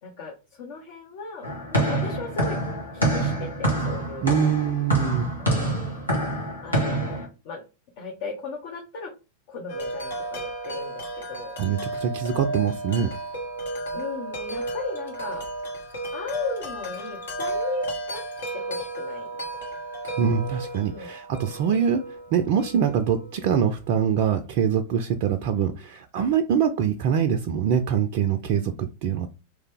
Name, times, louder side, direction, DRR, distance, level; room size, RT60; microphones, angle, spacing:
voice 1, 0.0-2.6 2.9-4.5 5.4-5.9 6.6-7.6 8.0-9.1 9.5-11.6 13.9-15.4 15.7-15.9 16.1-18.2 18.5-19.4 20.8-21.2, left 4 dB, 50° left, 0 dB, 0.8 m, -36 dB
sound 1, 1.4-7.3, right 1 dB, 85° left, 1.4 m, -26 dB
voice 2, 4.2-5.3 11.6-13.1 20.2-29.3, right 7 dB, 45° right, 7 dB, 0.4 m, -24 dB
Wind chime, 9.7-23.6, right 2 dB, 65° left, 1.1 m, -34 dB
3.3 x 2.8 x 3.4 m, 0.30 s
figure-of-eight pair, 90°, 0 cm